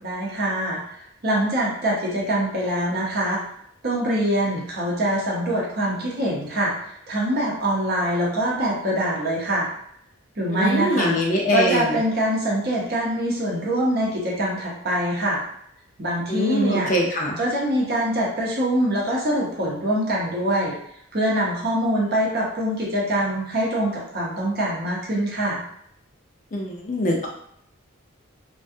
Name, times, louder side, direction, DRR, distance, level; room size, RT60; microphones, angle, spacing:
voice 1, 0.0-0.8 1.2-3.4 3.8-9.7 10.4-11.2 11.5-15.4 16.0-16.9 17.4-20.8 21.1-25.6, right 1 dB, 45° right, -4 dB, 0.7 m, -24 dB
voice 2, 10.5-12.0 16.3-17.4 26.5-27.3, equal, 35° left, 0 dB, 0.4 m, -23 dB
2.4 x 2.2 x 2.6 m, 0.70 s
head